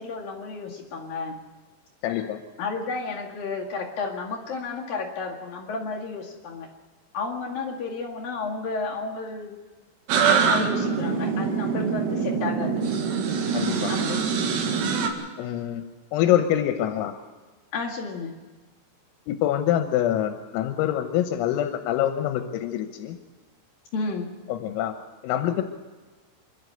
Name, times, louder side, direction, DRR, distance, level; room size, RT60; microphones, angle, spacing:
voice 1, 0.0-1.4 2.6-6.7 7.1-9.5 10.2-12.8 13.9-14.9 17.7-18.4 23.9-24.3, left 4 dB, 55° left, -2 dB, 3.3 m, -32 dB
voice 2, 2.0-2.4 13.5-13.9 15.4-15.8 16.1-17.1 19.3-23.2 24.5-25.0 25.2-25.6, left 11 dB, 85° left, 6 dB, 3.7 m, -25 dB
sound 1, 10.1-15.1, right 6 dB, 80° right, 4.8 m, -24 dB
27.0 x 12.5 x 8.0 m, 1.3 s
omnidirectional pair, 6.0 m